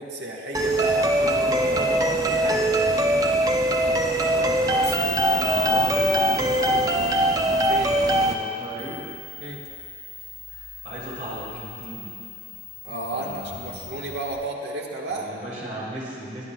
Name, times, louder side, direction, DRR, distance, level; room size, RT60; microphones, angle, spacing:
voice 1, 0.0-1.1 1.7-2.7 7.6-8.0 9.4-9.6 12.8-15.3, right 2 dB, 70° right, -1 dB, 1.4 m, -33 dB
sound 1, 0.5-8.3, right 1 dB, 20° right, 0.5 m, -21 dB
voice 2, 1.0-2.2 4.2-7.1 7.6-9.0 10.5-12.1 13.1-13.8 15.1-16.4, equal, 40° right, -7 dB, 3.2 m, -37 dB
sound 2, 4.8-14.4, left 5 dB, 55° left, 1.2 m, -39 dB
21.0 x 9.7 x 2.3 m, 2.4 s
head